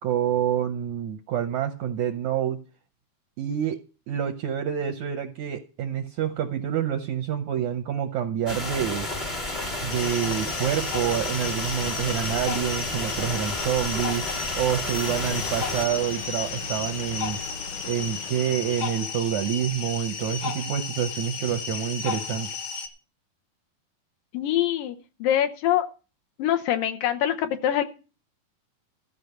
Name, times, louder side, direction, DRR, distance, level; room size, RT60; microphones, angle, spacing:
voice 1, 0.0-2.6 3.4-3.8 4.1-9.1 9.8-14.2 14.5-17.4 17.8-22.5, right 9 dB, 80° right, 5 dB, 1.7 m, -27 dB
sound 1, 8.5-15.9, left 1 dB, 30° left, 0.8 m, -31 dB
sound 2, 9.9-22.9, left 6 dB, 60° left, 2.2 m, -34 dB
sound 3, 14.9-19.6, left 4 dB, 90° left, 3.6 m, -39 dB
voice 2, 24.3-25.9 26.4-27.8, left 11 dB, 75° left, 6 dB, 2.3 m, -24 dB
13.5 x 5.5 x 7.9 m, 0.35 s
omnidirectional pair, 4.3 m